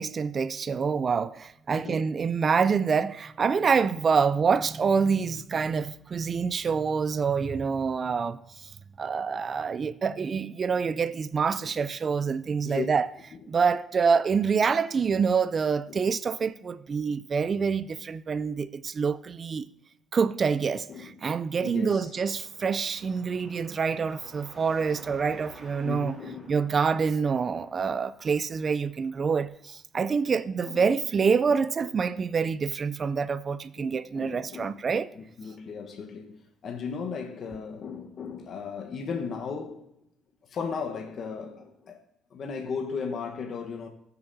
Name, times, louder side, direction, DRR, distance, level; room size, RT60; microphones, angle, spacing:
voice 1, 0.0-8.7 9.0-13.1 13.5-19.7 20.1-26.2 26.5-35.1, right 5 dB, 45° right, 0.4 m, -26 dB
voice 2, 1.7-2.1 11.6-11.7 12.6-12.9 15.9-16.0 20.9-21.1 21.6-22.1 25.8-26.5 30.7-30.8 33.8-34.7 35.1-39.9 40.5-42.0 42.3-43.9, left 5 dB, 60° left, 1.1 m, -36 dB
Car passing by / Traffic noise roadway noise / Engine, 22.1-29.5, equal, 20° right, 4.7 m, -52 dB
19.5 x 6.7 x 2.7 m
cardioid pair, 90°, 0 cm